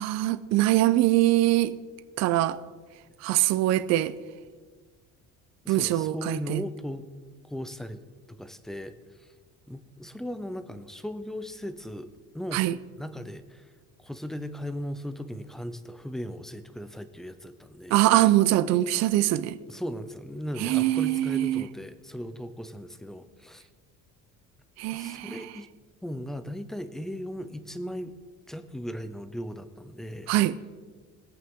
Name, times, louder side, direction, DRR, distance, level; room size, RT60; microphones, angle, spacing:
voice 1, 0.0-1.8 2.2-2.6 3.2-4.1 5.7-6.6 12.5-12.7 17.9-19.6 20.6-21.7 24.8-25.4 30.3-30.6, right 15 dB, 55° right, 0.5 m, -23 dB
voice 2, 5.6-7.1 7.4-8.0 8.3-9.3 9.7-12.7 13.0-13.7 14.0-18.0 19.7-23.7 24.9-25.7 26.0-28.1 28.5-30.3, equal, ahead, 0.4 m, -37 dB
22.0 x 8.5 x 3.6 m
cardioid pair, 170°, 32 cm